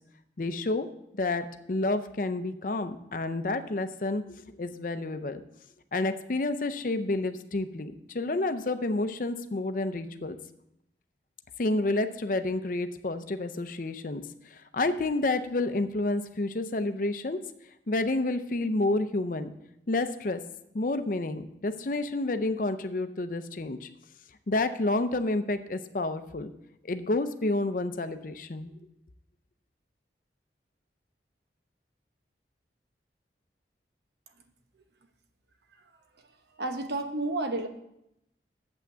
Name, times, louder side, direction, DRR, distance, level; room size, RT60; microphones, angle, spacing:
voice 1, 0.4-0.9 1.1-5.4 5.9-10.4 11.6-14.2 14.5-17.4 17.9-19.5 19.9-20.4 20.7-23.9 24.5-26.5 26.8-28.7, left 2 dB, 50° left, 10 dB, 0.6 m, -29 dB
voice 2, 36.6-37.7, right 2 dB, 75° right, 6 dB, 1.0 m, -30 dB
7.9 x 5.9 x 7.3 m, 0.82 s
head